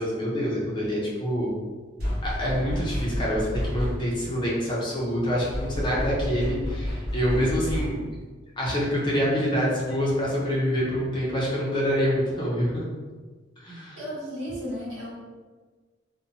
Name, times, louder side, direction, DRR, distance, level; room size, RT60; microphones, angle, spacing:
voice 1, 0.0-1.5 2.2-8.0 8.6-12.8 13.6-14.0, equal, 25° left, -5 dB, 0.5 m, -26 dB
sound 1, 2.0-4.2 5.5-8.2, equal, 50° right, 0.8 m, -30 dB
voice 2, 14.0-15.1, equal, 75° right, -8 dB, 1.3 m, -34 dB
2.5 x 2.1 x 2.8 m, 1.4 s
head